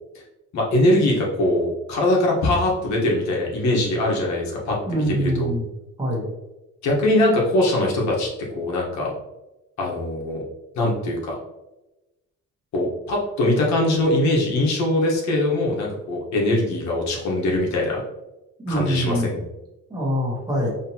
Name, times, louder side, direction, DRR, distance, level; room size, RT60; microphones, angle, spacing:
voice 1, 0.5-5.5 6.8-8.3 8.5-9.1 9.8-10.4 10.7-11.4 12.7-18.0 18.7-19.4, left 1 dB, 65° left, -2 dB, 1.2 m, -22 dB
voice 2, 4.9-5.7 6.0-6.3 18.6-19.4 19.9-20.7, equal, 10° right, -4 dB, 1.2 m, -24 dB
4.2 x 3.1 x 2.8 m, 0.99 s
cardioid pair, 125°, 30 cm